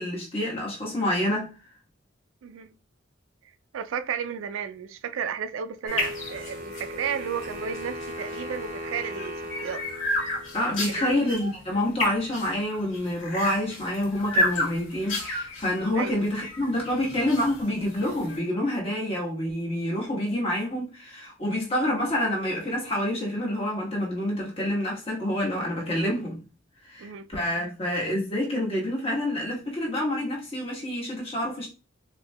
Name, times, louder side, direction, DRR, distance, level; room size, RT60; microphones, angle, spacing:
voice 1, 0.0-1.5 10.5-26.4 26.8-31.7, left 1 dB, 30° left, 1.3 m, -27 dB
voice 2, 2.4-2.7 3.7-9.3 9.6-9.8 10.9-11.2 15.9-16.2 27.0-27.2, right 7 dB, 80° right, 0.4 m, -33 dB
sound 1, 5.8-18.4, left 1 dB, 80° left, 1.7 m, -32 dB
Wind instrument woodwind instrument, 5.9-10.9, equal, 40° right, 0.7 m, -37 dB
4.3 x 2.7 x 2.2 m
head